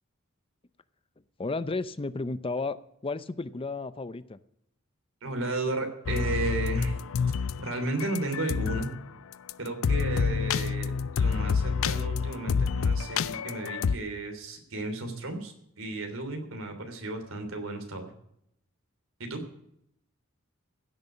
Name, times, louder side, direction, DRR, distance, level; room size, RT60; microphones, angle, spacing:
voice 1, 1.4-4.4, left 3 dB, 25° left, 14 dB, 0.6 m, -33 dB
voice 2, 5.2-7.0 7.6-8.9 9.6-18.1 19.2-19.4, right 2 dB, 85° right, 5 dB, 3.3 m, -34 dB
sound 1, 6.1-8.9 9.3-9.5 9.8-14.0, left 5 dB, 70° left, 0.4 m, -28 dB
16.0 x 6.8 x 8.3 m, 0.75 s
head